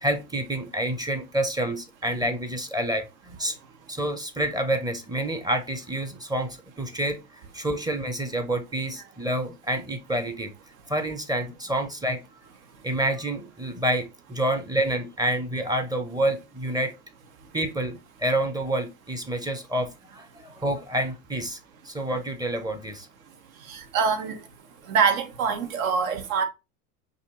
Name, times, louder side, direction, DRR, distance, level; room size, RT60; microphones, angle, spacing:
voice 1, 0.0-3.0 3.4-3.6 3.9-7.2 7.5-10.5 10.9-12.2 12.8-16.9 17.5-20.3 20.6-21.6 21.9-23.1, right 1 dB, 10° right, 0.7 m, -28 dB
voice 2, 23.7-24.4 24.9-26.4, right 6 dB, 65° right, 1.3 m, -24 dB
4.8 x 2.9 x 3.1 m
hypercardioid pair, 95°, 46 cm